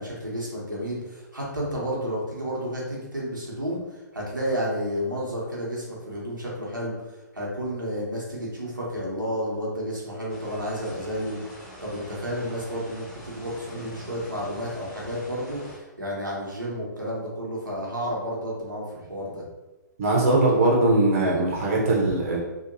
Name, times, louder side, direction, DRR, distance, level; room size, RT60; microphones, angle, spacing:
voice 1, 0.0-7.0 7.3-19.4, equal, 85° right, -5 dB, 1.0 m, -31 dB
sound 1, 10.3-15.8, equal, 5° left, 1.0 m, -44 dB
voice 2, 20.0-22.4, right 2 dB, 45° right, -4 dB, 0.8 m, -21 dB
2.8 x 2.5 x 2.6 m, 1.1 s
figure-of-eight pair, 125°, 10 cm